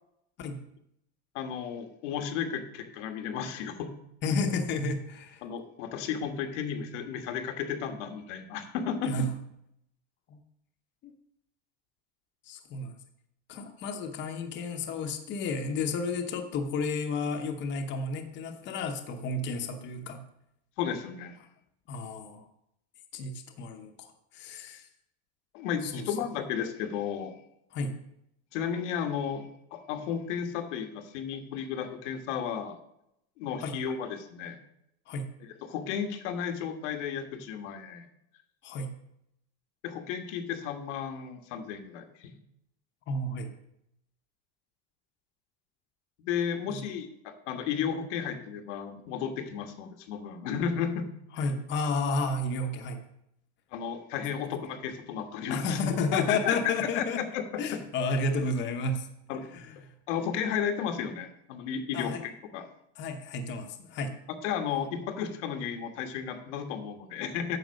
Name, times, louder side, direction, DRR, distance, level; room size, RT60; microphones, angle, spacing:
voice 1, 1.3-3.9 5.4-9.1 20.8-21.4 25.5-27.3 28.5-32.8 33.4-34.6 35.6-38.0 39.8-42.3 46.2-51.1 53.7-57.8 59.3-59.5 60.1-62.6 64.4-67.6, left 7 dB, 85° left, 6 dB, 1.5 m, -33 dB
voice 2, 4.2-5.4 9.0-9.3 10.3-10.4 11.0-11.1 12.4-12.9 13.5-20.2 21.9-22.4 23.1-24.1 24.3-24.9 25.8-26.0 27.7-28.0 33.6-33.8 35.1-35.3 38.6-38.9 43.1-43.5 46.7-46.8 51.3-53.0 55.5-57.2 57.6-59.9 61.9-62.2 63.0-64.2, left 3 dB, 30° left, 5 dB, 0.9 m, -32 dB
9.1 x 5.9 x 6.3 m, 0.79 s
cardioid pair, 160°, 35 cm